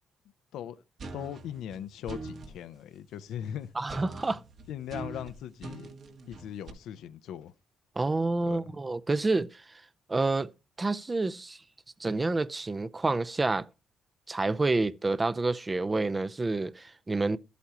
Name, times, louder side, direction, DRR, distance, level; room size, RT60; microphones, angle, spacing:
voice 1, 0.5-0.8 1.1-3.7 4.7-5.9 6.3-7.5 8.4-8.7, left 10 dB, 85° left, 0.6 m, -39 dB
sound 1, 1.0-2.6 3.9-6.7, right 3 dB, 60° right, 1.7 m, -42 dB
voice 2, 3.8-4.4 8.0-9.5 10.1-10.5 10.8-11.6 12.0-13.7 14.3-17.4, right 3 dB, 25° right, 0.5 m, -28 dB
13.0 x 8.3 x 2.9 m
cardioid pair, 90°, 0 cm